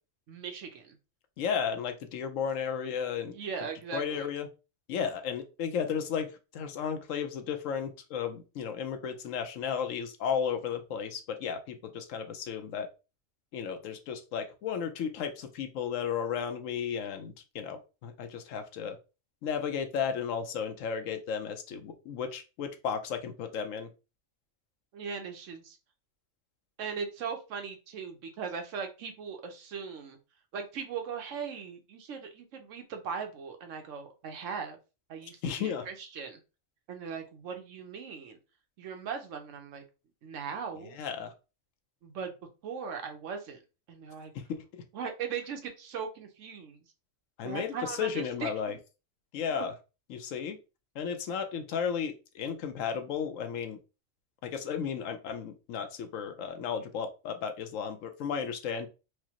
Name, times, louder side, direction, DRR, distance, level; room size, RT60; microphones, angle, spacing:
voice 1, 0.3-1.0 3.3-4.3 24.9-25.8 26.8-30.2 30.5-34.8 35.1-36.4 36.9-38.4 38.8-39.8 40.2-41.0 42.0-42.3 42.6-43.6 43.9-44.3 44.9-46.8 47.4-48.8, right 6 dB, 75° right, 5 dB, 1.1 m, -39 dB
voice 2, 1.4-3.4 3.9-4.5 4.9-6.3 6.5-12.9 13.5-19.0 19.4-23.9 35.4-35.9 40.9-41.3 44.7-44.8 47.4-48.7 49.3-49.7 50.1-50.6 50.9-53.8 54.4-58.9, left 7 dB, 90° left, 7 dB, 1.0 m, -34 dB
4.7 x 2.1 x 2.9 m, 0.30 s
omnidirectional pair, 1.3 m